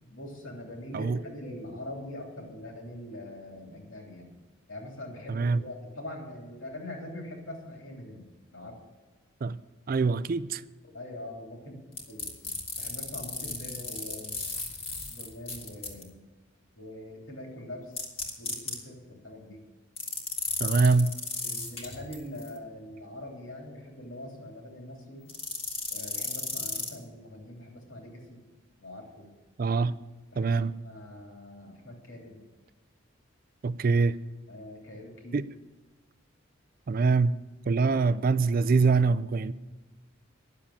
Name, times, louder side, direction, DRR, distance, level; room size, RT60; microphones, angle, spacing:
voice 1, 0.1-4.3 4.7-8.8 10.8-11.8 12.1-12.3 12.8-14.4 15.1-16.2 16.8-18.1 18.4-19.6 21.4-25.2 25.9-28.4 28.8-29.3 30.3-32.4 34.5-35.4, left 1 dB, 70° left, 3.2 m, -43 dB
voice 2, 5.3-5.6 9.4-9.6 9.9-10.6 20.6-21.1 29.6-29.9 30.4-30.7 33.6-34.2 35.3-35.4 36.9-37.4 37.7-39.5, right 4 dB, 45° right, 0.4 m, -24 dB
sound 1, 12.0-16.0 18.0-18.8 20.0-22.5 25.3-26.9, left 3 dB, 30° left, 2.0 m, -34 dB
10.5 x 7.4 x 8.4 m
head